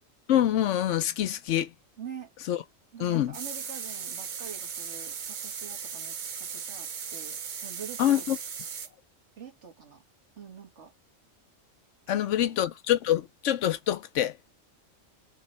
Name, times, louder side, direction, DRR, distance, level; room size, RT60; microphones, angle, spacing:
voice 1, 0.3-1.7 2.5-2.6 3.0-3.4 8.0-8.4 12.1-14.3, left 11 dB, 75° left, 0.9 m, -25 dB
voice 2, 2.0-2.3 2.9-8.3 9.4-10.0 10.4-10.9 12.1-12.6, right 7 dB, 65° right, 1.8 m, -45 dB
sound 1, 3.3-8.9, right 7 dB, 45° right, 0.7 m, -37 dB
3.7 x 3.1 x 4.1 m
omnidirectional pair, 1.3 m